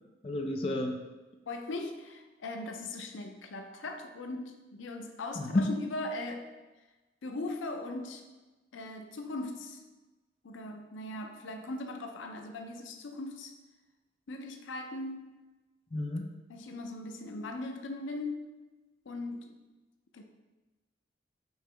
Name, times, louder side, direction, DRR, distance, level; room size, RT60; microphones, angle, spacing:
voice 1, 0.2-1.0 5.4-5.6 15.9-16.3, left 2 dB, 30° left, 2 dB, 0.4 m, -31 dB
voice 2, 1.5-6.4 7.2-8.2 8.7-9.8 10.4-13.5 14.3-15.3 16.5-18.5 19.1-19.6 20.1-20.2, left 2 dB, 85° left, 5 dB, 0.5 m, -39 dB
5.4 x 2.9 x 3.3 m, 1.2 s
head